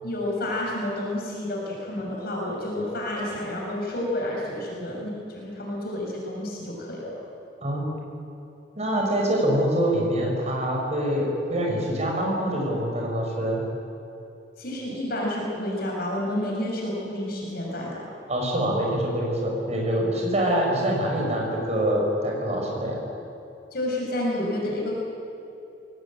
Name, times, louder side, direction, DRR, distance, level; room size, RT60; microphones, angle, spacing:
voice 1, 0.0-7.2 14.6-18.0 23.7-24.9, left 1 dB, 55° left, -2 dB, 6.4 m, -30 dB
voice 2, 8.8-13.6 18.3-23.0, right 1 dB, 40° right, -1 dB, 6.0 m, -25 dB
22.5 x 18.5 x 8.9 m, 2.8 s
head